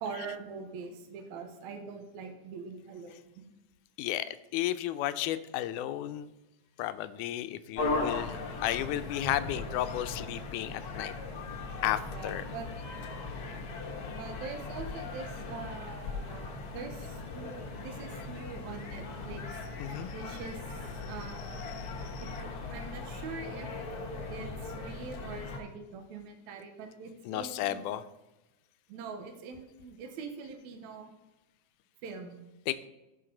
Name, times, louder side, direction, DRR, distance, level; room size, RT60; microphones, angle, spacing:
voice 1, 0.0-3.5 12.1-12.7 14.2-19.6 20.1-20.6 21.0-21.6 22.2-23.7 24.3-27.9 28.9-31.1 32.0-32.4, right 5 dB, 75° right, 5 dB, 2.2 m, -43 dB
voice 2, 4.0-6.3 6.8-11.1 11.8-12.4 19.8-20.2 21.0-22.4 27.3-28.0 32.7-32.9, left 13 dB, 90° left, 12 dB, 2.1 m, -34 dB
sound 1, 7.8-25.6, left 3 dB, 60° left, 1.0 m, -38 dB
15.5 x 5.8 x 3.8 m, 0.99 s
omnidirectional pair, 3.5 m